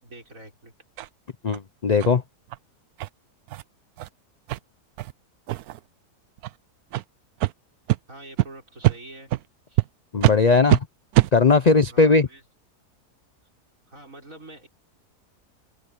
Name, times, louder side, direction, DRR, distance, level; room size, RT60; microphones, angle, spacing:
voice 1, 0.0-0.7 8.1-9.3 9.7-9.8 11.9-12.4 13.9-14.7, right 2 dB, 55° right, 6.4 m, -45 dB
sound 1, 1.0-1.1 1.5-1.6 2.0-2.1 2.5-2.6 3.0-3.1 3.5-3.6 4.0-4.1 4.5-4.6 5.0-5.1 5.5-5.8 6.4-6.5 6.9-7.0 7.4-7.5 7.9-8.0 8.4-8.5 8.8-9.0 9.3-9.4 9.8-9.9 10.2-10.4 10.7-10.8 11.1-11.3, right 15 dB, 75° right, 1.1 m, -22 dB
voice 2, 1.4-2.2 10.1-10.9 11.3-12.3, left 4 dB, 40° left, 0.6 m, -18 dB
omnidirectional pair, 1.7 m